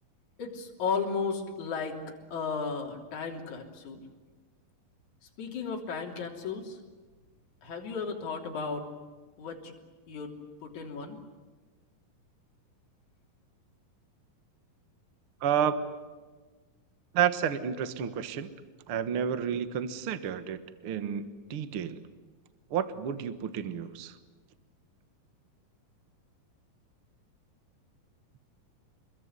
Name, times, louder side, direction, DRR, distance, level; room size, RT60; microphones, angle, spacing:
voice 1, 0.4-2.0 2.3-4.1 5.4-6.8 7.6-8.9 9.4-9.7 10.1-11.2, left 5 dB, 55° left, 1 dB, 4.6 m, -34 dB
voice 2, 15.4-15.9 17.1-18.5 18.9-22.0 22.7-24.2, right 8 dB, 55° right, 11 dB, 1.7 m, -30 dB
28.0 x 22.0 x 9.7 m, 1.3 s
omnidirectional pair, 4.1 m